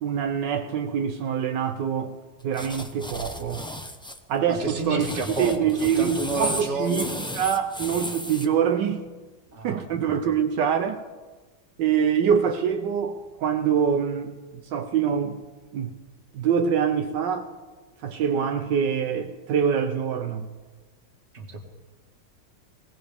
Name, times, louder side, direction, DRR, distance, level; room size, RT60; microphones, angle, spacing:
voice 1, 0.0-2.1 2.4-3.6 4.3-5.1 5.4-7.0 7.4-9.0 9.6-11.0 11.8-14.3 14.7-15.4 15.7-15.9 16.3-17.5 18.0-20.5, right 7 dB, 80° right, 1.4 m, -24 dB
sound 1, 2.5-4.2 4.8-8.5, left 1 dB, 5° left, 0.4 m, -34 dB
voice 2, 4.5-7.2 9.5-10.3 21.3-21.6, right 2 dB, 40° right, 2.0 m, -31 dB
21.0 x 18.0 x 3.5 m
omnidirectional pair, 1.9 m